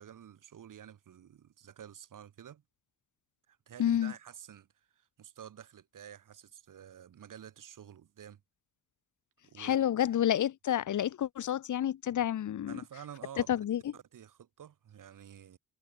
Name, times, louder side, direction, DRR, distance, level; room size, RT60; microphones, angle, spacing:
voice 1, 0.0-2.6 3.5-8.4 9.4-9.8 12.7-13.5 13.9-15.6, right 9 dB, 75° right, 4.3 m, -50 dB
voice 2, 3.8-4.1 9.6-12.8 13.5-13.8, left 10 dB, 70° left, 1.0 m, -29 dB
cardioid pair, 90°, 32 cm